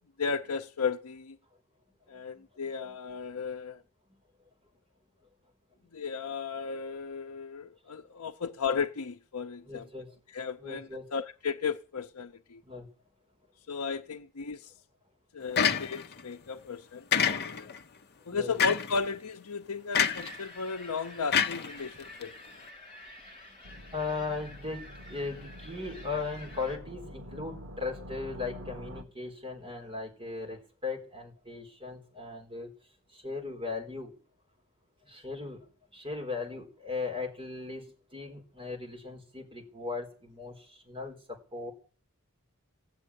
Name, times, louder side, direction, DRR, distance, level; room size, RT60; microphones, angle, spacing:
voice 1, 0.2-1.4 2.1-3.8 5.9-9.9 10.3-12.6 13.7-14.7 15.3-17.7 18.3-22.3, left 5 dB, 85° left, 0.7 m, -35 dB
voice 2, 2.3-2.9 9.6-10.1 10.6-11.0 12.6-12.9 18.3-18.5 23.2-32.7 33.1-34.1 35.0-41.7, left 4 dB, 25° right, 4.2 m, -38 dB
sound 1, 15.6-16.2 17.1-17.8 18.6-19.0 19.9-20.4 21.3-22.2, left 7 dB, 50° left, 0.8 m, -27 dB
sound 2, 19.9-26.8, left 1 dB, 25° left, 3.7 m, -49 dB
sound 3, 23.6-29.0, equal, 75° right, 1.7 m, -46 dB
15.5 x 7.3 x 10.0 m
head